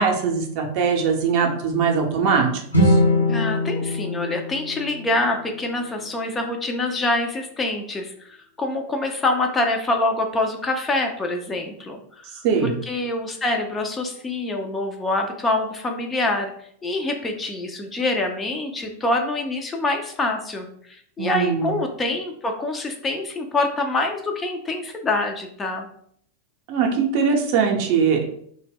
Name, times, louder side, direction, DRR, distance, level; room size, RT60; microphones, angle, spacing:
voice 1, 0.0-2.5 2.8-3.0 12.4-12.8 21.2-21.7 26.7-28.2, right 5 dB, 45° right, 2 dB, 0.5 m, -21 dB
sound 1, 2.7-6.0, left 1 dB, 80° left, 0.5 m, -22 dB
voice 2, 3.3-16.5 16.8-25.9, left 2 dB, 15° left, 3 dB, 0.3 m, -25 dB
2.1 x 2.1 x 3.3 m, 0.65 s
figure-of-eight pair, 90°, 0 cm